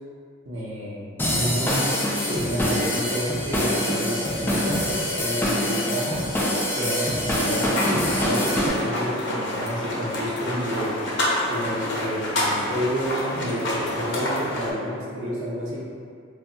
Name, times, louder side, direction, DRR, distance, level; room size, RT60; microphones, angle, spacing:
voice 1, 0.4-1.9 2.3-6.2 6.7-11.0 11.5-15.8, equal, 90° right, -6 dB, 0.7 m, -29 dB
sound 1, 1.2-8.7, left 1 dB, 10° left, 0.3 m, -25 dB
sound 2, 7.6-14.7, left 1 dB, 60° left, 0.6 m, -28 dB
2.2 x 2.2 x 3.8 m, 2.2 s
head